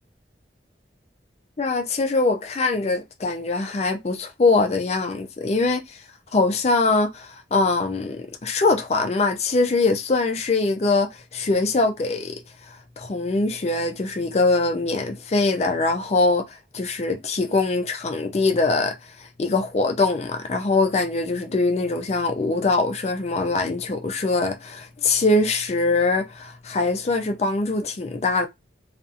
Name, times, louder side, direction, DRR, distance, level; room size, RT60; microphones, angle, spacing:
voice 1, 1.6-6.0 6.3-12.4 13.0-28.5, left 3 dB, 35° left, 0.4 m, -23 dB
2.6 x 2.4 x 2.4 m
head